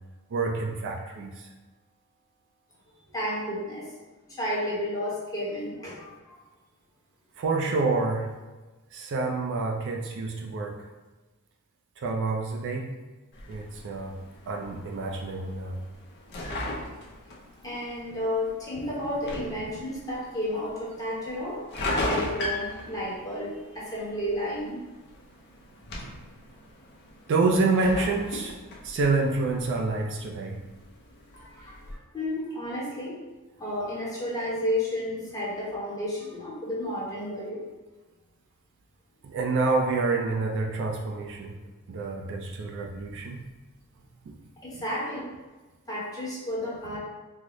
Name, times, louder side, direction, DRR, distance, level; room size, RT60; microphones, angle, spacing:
voice 1, 0.3-1.5 7.4-8.3 8.9-10.8 12.0-12.9 13.5-14.1 14.5-15.8 27.3-28.6 28.8-30.6 39.2-41.6 41.9-43.4 44.3-44.4, right 3 dB, 55° right, 1 dB, 0.4 m, -27 dB
voice 2, 3.1-3.9 4.3-6.3 17.6-21.6 22.0-24.8 31.3-33.2 33.6-37.6 44.6-45.3 45.9-47.0, left 1 dB, 15° left, -7 dB, 0.9 m, -32 dB
sound 1, 13.3-31.9, left 1 dB, 50° left, 0.6 m, -38 dB
3.8 x 2.0 x 3.0 m, 1.2 s
head